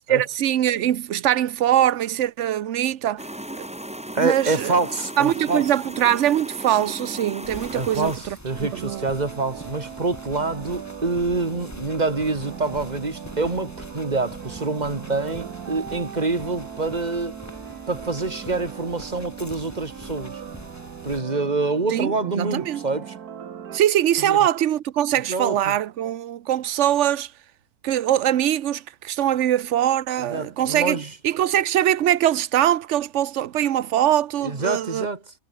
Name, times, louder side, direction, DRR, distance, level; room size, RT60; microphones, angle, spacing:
voice 1, 0.1-3.2 3.6-3.7 4.2-4.8 5.2-9.1 21.9-22.8 23.7-27.3 27.8-31.0 31.2-35.1, right 11 dB, 55° right, 1.0 m, -22 dB
sound 1, 3.2-8.2, right 1 dB, 5° right, 1.4 m, -36 dB
voice 2, 4.1-5.7 7.7-17.4 17.9-20.4 21.0-23.1 24.2-24.4 25.3-25.8 30.2-31.1 34.4-35.3, right 3 dB, 30° right, 2.4 m, -26 dB
sound 2, 7.4-21.2, left 1 dB, 10° left, 1.7 m, -43 dB
sound 3, 8.5-23.8, right 8 dB, 80° right, 1.8 m, -39 dB
omnidirectional pair, 1.6 m